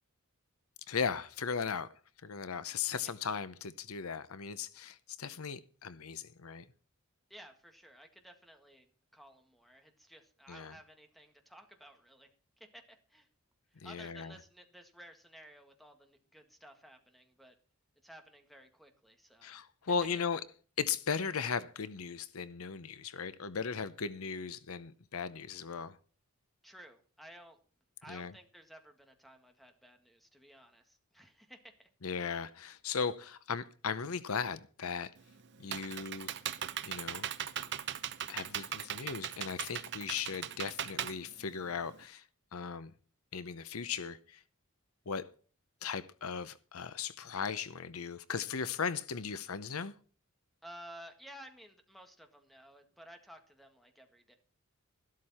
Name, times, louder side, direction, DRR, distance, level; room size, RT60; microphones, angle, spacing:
voice 1, 0.9-1.9 2.2-6.6 10.5-10.7 13.8-14.3 19.4-20.4 20.8-25.9 28.1-28.3 32.0-35.1 35.6-36.3 36.8-37.3 38.3-42.2 42.5-42.9 43.3-44.4 45.1-45.2 45.8-49.9, left 6 dB, 75° left, 0.7 m, -37 dB
voice 2, 7.3-8.9 9.1-12.3 12.6-13.3 13.7-17.6 18.0-19.5 26.6-27.6 28.0-31.9 50.6-54.4, equal, ahead, 1.8 m, -55 dB
Computer keyboard, 35.2-42.0, right 9 dB, 55° right, 0.8 m, -39 dB
13.0 x 12.5 x 4.3 m
head